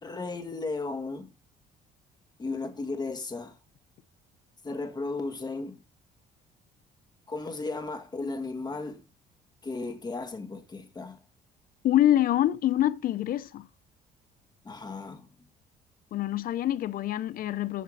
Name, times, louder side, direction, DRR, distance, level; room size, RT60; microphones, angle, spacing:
voice 1, 0.0-1.3 2.4-3.6 4.6-5.8 7.3-9.0 9.6-11.2 14.6-15.3, left 3 dB, 25° left, 1.8 m, -35 dB
voice 2, 11.8-13.7 16.1-17.8, left 12 dB, 60° left, 0.6 m, -25 dB
14.5 x 5.2 x 4.0 m
cardioid pair, 110°, 17 cm